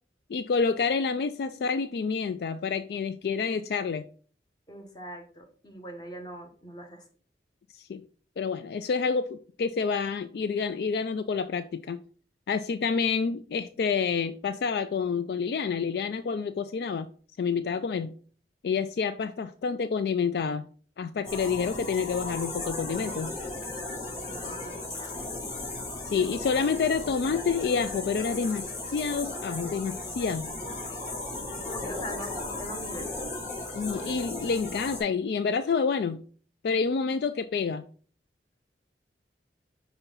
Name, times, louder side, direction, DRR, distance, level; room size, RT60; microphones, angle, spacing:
voice 1, 0.3-4.0 7.7-8.0 8.4-12.0 12.5-17.1 17.4-18.1 18.6-20.7 21.0-23.3 26.0-30.5 33.7-36.2 36.6-37.8, left 5 dB, 60° left, 0.3 m, -28 dB
voice 2, 4.7-7.0 24.1-25.6 31.6-33.3, equal, 25° left, 1.1 m, -42 dB
sound 1, 21.2-35.0, left 2 dB, 45° left, 3.2 m, -36 dB
5.6 x 4.5 x 3.9 m
head